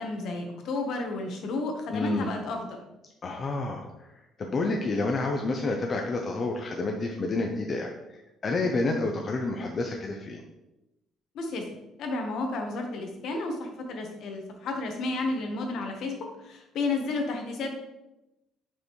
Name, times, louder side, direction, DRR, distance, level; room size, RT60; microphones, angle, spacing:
voice 1, 0.0-2.8 11.3-11.6 12.0-17.7, left 3 dB, 55° left, 3 dB, 1.2 m, -32 dB
voice 2, 1.9-2.3 3.2-3.8 4.4-7.9 8.4-10.4, left 2 dB, 30° left, 2 dB, 0.5 m, -29 dB
6.7 x 5.4 x 3.1 m, 0.95 s
cardioid pair, 170°, 0 cm